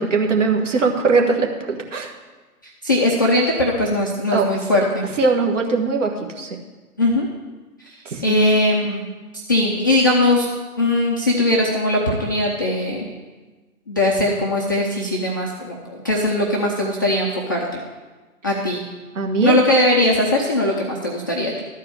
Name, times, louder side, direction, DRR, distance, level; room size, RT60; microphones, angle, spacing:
voice 1, 0.0-2.1 4.3-4.5 5.2-6.6 8.0-8.4 19.1-19.5, right 4 dB, 55° right, 2 dB, 1.6 m, -20 dB
voice 2, 2.6-5.1 7.0-7.3 7.8-9.0 9.5-10.5 10.8-13.1 13.9-17.7 18.4-18.8 19.4-21.6, left 1 dB, 15° left, -5 dB, 0.5 m, -20 dB
12.5 x 4.7 x 8.4 m, 1.3 s
figure-of-eight pair, 130°, 45 cm